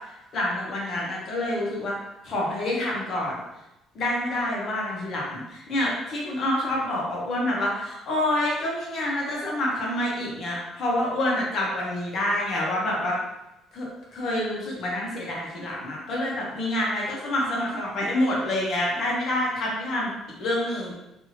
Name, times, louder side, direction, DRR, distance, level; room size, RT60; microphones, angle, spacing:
voice 1, 0.3-2.0 2.2-3.3 3.9-13.2 13.7-20.1 20.4-20.9, left 1 dB, 40° left, -3 dB, 0.8 m, -27 dB
2.8 x 2.6 x 2.7 m, 0.93 s
cardioid pair, 175°, 0 cm